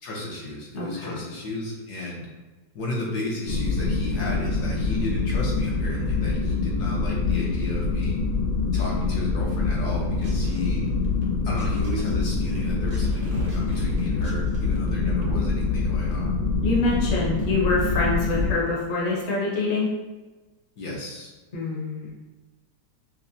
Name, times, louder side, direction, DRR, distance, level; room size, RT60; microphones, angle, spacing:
voice 1, 0.0-2.3 2.7-8.2 8.7-10.8 11.4-16.4 20.8-21.3, left 2 dB, 70° left, -4 dB, 1.3 m, -33 dB
voice 2, 0.7-1.2 16.6-19.9 21.5-22.1, left 3 dB, 50° left, -4 dB, 1.0 m, -25 dB
sound 1, 3.5-18.5, left 3 dB, 85° left, 1.3 m, -25 dB
sound 2, 10.2-11.2 11.5-15.3, right 3 dB, 70° right, 1.1 m, -42 dB
5.5 x 2.1 x 2.7 m, 1.2 s
omnidirectional pair, 1.8 m